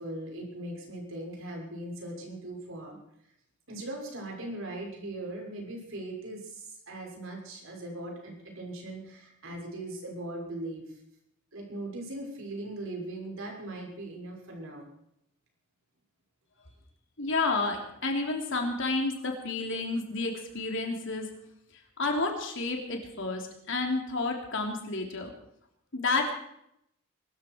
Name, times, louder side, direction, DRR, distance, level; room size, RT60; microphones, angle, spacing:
voice 1, 0.0-3.0 3.7-10.8 11.5-14.8, right 1 dB, 65° right, 0 dB, 6.2 m, -39 dB
voice 2, 17.2-21.3 22.0-25.3 25.9-26.3, left 3 dB, 60° left, 2 dB, 3.4 m, -30 dB
22.5 x 13.5 x 4.7 m, 0.75 s
head